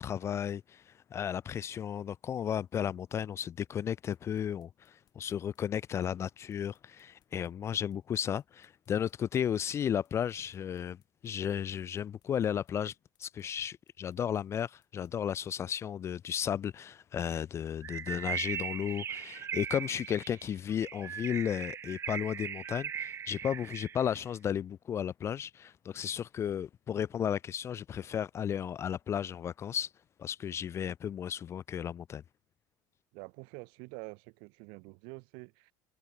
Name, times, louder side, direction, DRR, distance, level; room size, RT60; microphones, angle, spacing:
voice 1, 0.0-12.9 13.2-29.9 30.2-32.2, left 9 dB, 30° left, 0.4 m, -34 dB
sound 1, 3.9-15.6, left 13 dB, 50° left, 7.9 m, -75 dB
Bird, 17.8-24.1, right 8 dB, 30° right, 0.6 m, -39 dB
voice 2, 33.1-35.7, right 34 dB, 75° right, 3.8 m, -47 dB
cardioid pair, 130°, 9 cm